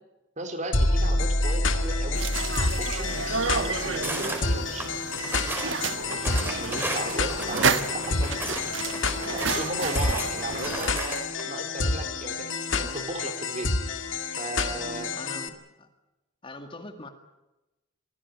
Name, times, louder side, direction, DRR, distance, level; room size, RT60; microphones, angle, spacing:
voice 1, 0.4-2.3 2.8-4.9 5.1-8.7 9.2-13.7 14.3-15.1, right 2 dB, 40° right, 6 dB, 3.7 m, -36 dB
sound 1, 0.7-15.5, left 3 dB, 85° left, 2.0 m, -28 dB
sound 2, 2.1-10.9, right 5 dB, 90° right, 1.3 m, -31 dB
sound 3, 4.0-4.4 4.8-5.7 6.1-8.6 8.9-11.4, right 1 dB, 10° right, 4.6 m, -34 dB
voice 2, 7.9-9.0 15.1-15.9 16.4-17.1, left 2 dB, 30° left, 6 dB, 2.1 m, -43 dB
24.5 x 16.0 x 9.8 m, 1.0 s
head